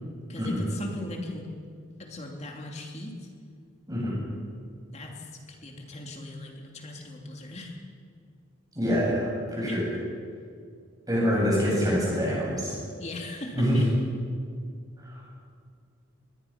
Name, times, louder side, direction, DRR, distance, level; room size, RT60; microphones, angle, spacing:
voice 1, 0.3-1.5 2.0-3.3 4.9-7.8 9.7-9.9 13.0-13.9, left 1 dB, 30° left, 1 dB, 2.7 m, -39 dB
voice 2, 8.8-9.8 11.1-12.7 13.5-13.8 15.0-15.2, equal, 15° right, -5 dB, 7.6 m, -25 dB
22.0 x 20.5 x 5.9 m, 2.2 s
head